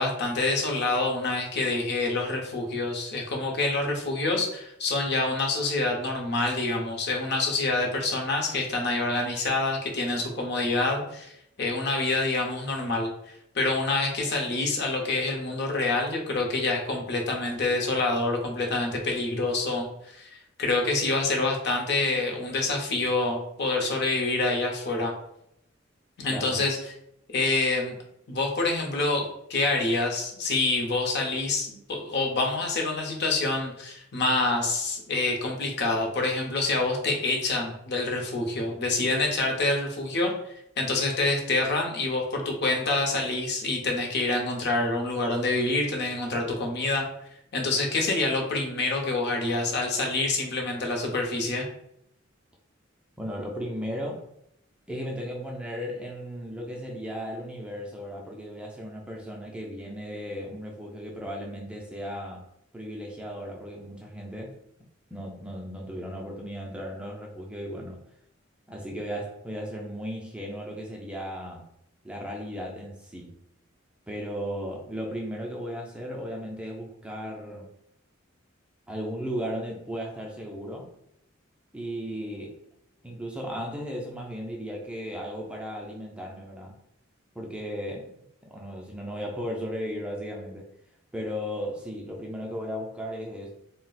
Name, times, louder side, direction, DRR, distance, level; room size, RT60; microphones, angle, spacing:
voice 1, 0.0-13.1 13.5-25.1 26.2-26.8 27.3-28.0 28.3-47.0 47.5-51.7, left 2 dB, 55° left, 1 dB, 0.7 m, -27 dB
voice 2, 26.3-26.6 53.2-54.2 54.9-62.4 62.7-64.5 65.1-68.0 68.7-71.7 72.0-73.4 74.1-77.7 78.9-80.9 81.7-82.6 83.0-86.8 87.4-88.1 88.4-90.7 91.1-93.5, equal, 5° right, -1 dB, 0.3 m, -35 dB
2.3 x 2.0 x 3.9 m, 0.76 s
head